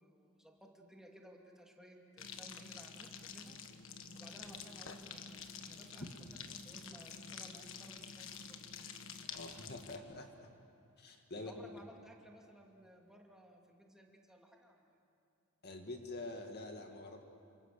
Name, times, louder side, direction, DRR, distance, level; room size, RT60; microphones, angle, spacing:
voice 1, 0.0-3.7 4.1-5.4 5.7-6.3 6.6-9.0 11.5-15.0, equal, 5° right, 0 dB, 2.7 m, -58 dB
sound 1, 2.2-10.0, left 6 dB, 70° left, 1.5 m, -49 dB
voice 2, 9.3-10.5 11.0-11.7 15.6-17.2, left 2 dB, 50° left, 4 dB, 2.1 m, -46 dB
28.5 x 26.0 x 6.9 m, 2.5 s
head